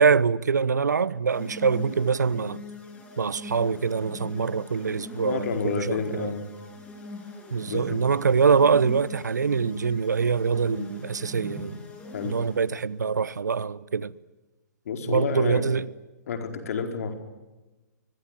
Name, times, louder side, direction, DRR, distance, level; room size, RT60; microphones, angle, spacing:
voice 1, 0.0-2.6 3.2-6.3 7.5-11.8 12.2-14.1 15.1-15.9, right 5 dB, 75° right, 1.0 m, -24 dB
sound 1, 1.3-12.8, left 2 dB, 10° left, 6.8 m, -42 dB
voice 2, 5.2-6.4 7.7-8.0 12.1-12.3 14.8-15.7 16.3-17.1, left 6 dB, 55° left, 4.7 m, -30 dB
25.5 x 22.5 x 9.4 m
figure-of-eight pair, 125°, 9 cm